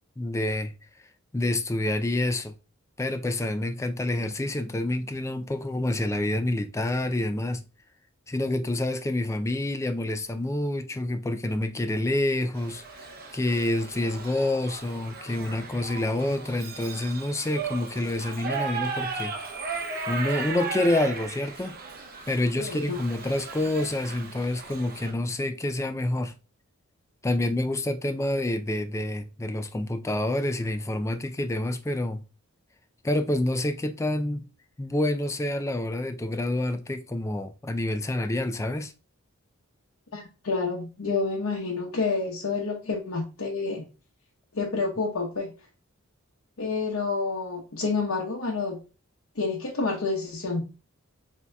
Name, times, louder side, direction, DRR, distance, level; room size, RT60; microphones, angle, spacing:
voice 1, 0.2-0.7 1.3-2.5 3.0-7.6 8.3-13.1 13.3-19.3 20.1-21.7 22.3-26.3 27.2-32.2 33.0-34.5 34.8-38.9, left 1 dB, 15° left, 0.4 m, -28 dB
Shout / Livestock farm animals working animals, 12.6-25.1, right 4 dB, 45° right, 0.7 m, -36 dB
voice 2, 22.6-23.0 40.1-43.9 44.5-45.5 46.6-48.8 49.4-50.6, left 4 dB, 80° left, 0.8 m, -29 dB
6.8 x 2.8 x 2.2 m
head